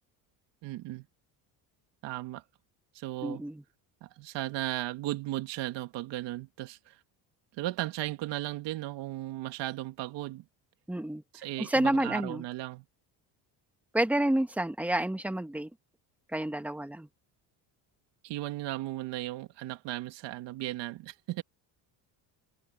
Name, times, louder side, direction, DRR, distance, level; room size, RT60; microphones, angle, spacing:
voice 1, 0.6-1.1 2.0-2.4 2.9-3.4 4.0-7.0 7.6-10.5 11.3-12.8 18.2-21.4, right 16 dB, 75° right, 2.3 m, -36 dB
voice 2, 3.2-3.6 10.9-11.2 11.6-12.4 13.9-15.7 16.3-17.1, right 1 dB, 5° right, 1.4 m, -29 dB
cardioid pair, 140°, 43 cm